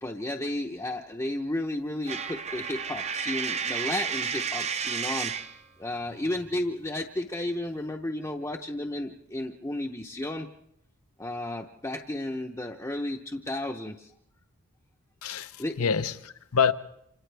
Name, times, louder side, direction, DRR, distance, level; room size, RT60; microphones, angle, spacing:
voice 1, 0.0-10.5 11.2-14.1 15.6-15.9, left 1 dB, 15° left, 0.8 m, -33 dB
Coin (dropping), 2.1-5.6, right 6 dB, 30° right, 0.7 m, -31 dB
voice 2, 15.2-16.7, left 6 dB, 75° left, 0.8 m, -26 dB
28.5 x 27.0 x 3.4 m
head